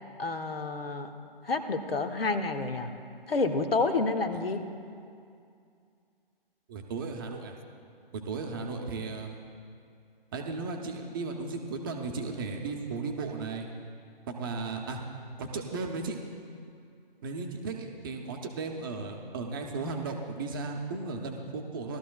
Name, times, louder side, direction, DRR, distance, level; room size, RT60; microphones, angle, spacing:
voice 1, 0.2-1.1 1.5-2.9 3.3-4.6, left 3 dB, 75° left, 7 dB, 1.1 m, -29 dB
voice 2, 6.7-7.6 8.1-9.4 10.3-13.7 14.3-15.0 15.4-16.2 17.2-22.0, right 4 dB, 25° right, 2 dB, 0.7 m, -35 dB
18.5 x 13.0 x 2.3 m, 2.4 s
figure-of-eight pair, 145°, 29 cm